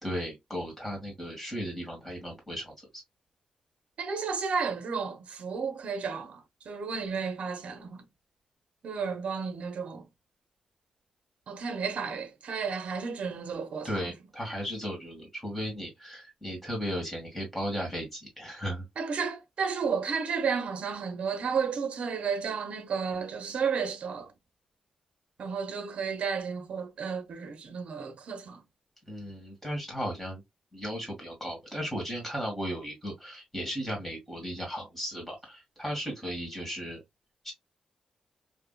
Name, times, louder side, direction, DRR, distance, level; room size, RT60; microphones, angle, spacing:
voice 1, 0.0-3.0 13.8-18.8 29.1-30.4 30.7-37.0 37.4-37.5, equal, 10° left, 2.2 m, -36 dB
voice 2, 4.0-8.0 8.8-10.0 11.5-13.9 19.0-24.3 25.4-28.6, right 5 dB, 65° right, 0.7 m, -32 dB
3.5 x 2.6 x 2.2 m
cardioid pair, 100°, 2 cm